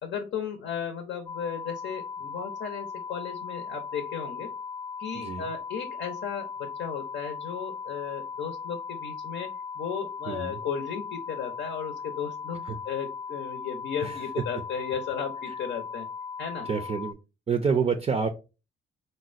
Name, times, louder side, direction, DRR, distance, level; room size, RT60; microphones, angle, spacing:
voice 1, 0.0-4.5 5.0-9.5 9.8-16.1 16.4-16.7, left 7 dB, 70° left, 5 dB, 0.7 m, -35 dB
sound 1, 1.3-17.1, left 6 dB, 30° left, 0.4 m, -38 dB
voice 2, 5.1-5.5 10.3-10.6 12.6-12.8 14.0-14.2 16.6-17.2 17.5-18.3, right 5 dB, 30° right, 6 dB, 0.4 m, -27 dB
4.0 x 2.1 x 2.4 m, 0.29 s
cardioid pair, 90°, 20 cm